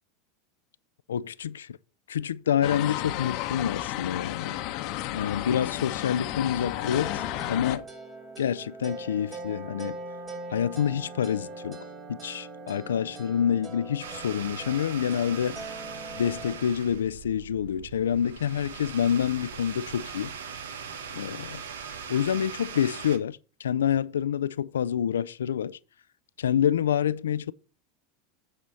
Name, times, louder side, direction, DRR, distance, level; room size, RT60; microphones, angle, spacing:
voice 1, 1.1-1.8 2.1-4.6 5.1-7.9 8.4-10.0 10.5-11.8 12.1-15.6 16.1-20.3 21.1-21.6 22.1-25.8 26.4-27.5, left 9 dB, 90° left, 0.3 m, -27 dB
sound 1, 2.6-7.8, left 14 dB, 55° left, 0.8 m, -32 dB
sound 2, 6.9-16.5, right 2 dB, 25° right, 3.1 m, -41 dB
sound 3, 14.0-23.2, right 6 dB, 85° right, 1.1 m, -40 dB
8.9 x 4.1 x 6.8 m
hypercardioid pair, 95°, 0 cm